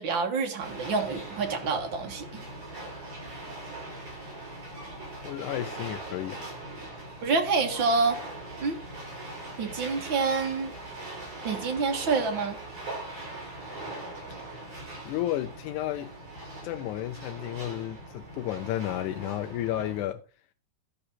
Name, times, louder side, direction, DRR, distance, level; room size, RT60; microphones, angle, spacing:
voice 1, 0.0-2.4 7.2-8.2 8.6-8.8 9.6-10.7 11.4-12.6, right 4 dB, 50° right, 1.7 m, -27 dB
sound 1, 0.6-20.0, right 2 dB, 80° right, 8.3 m, -41 dB
voice 2, 5.2-6.5 15.1-16.1 16.6-20.2, left 13 dB, 90° left, 2.1 m, -32 dB
14.0 x 5.1 x 4.3 m
omnidirectional pair, 3.4 m